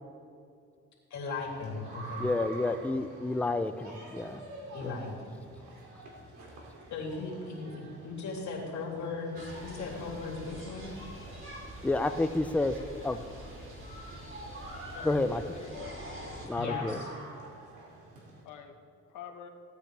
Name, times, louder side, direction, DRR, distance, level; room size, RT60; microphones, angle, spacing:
voice 1, 1.1-2.3 4.7-5.4 6.9-10.9 16.6-17.1, left 4 dB, 65° left, -2 dB, 3.0 m, -37 dB
sound 1, 1.4-18.4, right 2 dB, 80° right, 2.5 m, -49 dB
voice 2, 2.2-4.4 4.8-4.9 11.8-13.2 15.0-15.4 16.4-17.0, left 2 dB, 5° left, 9 dB, 0.5 m, -30 dB
sound 2, 9.3-16.5, right 1 dB, 45° right, 2.9 m, -44 dB
voice 3, 12.7-13.2 14.9-15.9 18.4-18.7 19.1-19.5, left 9 dB, 90° left, 4 dB, 1.1 m, -47 dB
16.0 x 9.1 x 3.4 m, 2.3 s
cardioid pair, 90°, 30 cm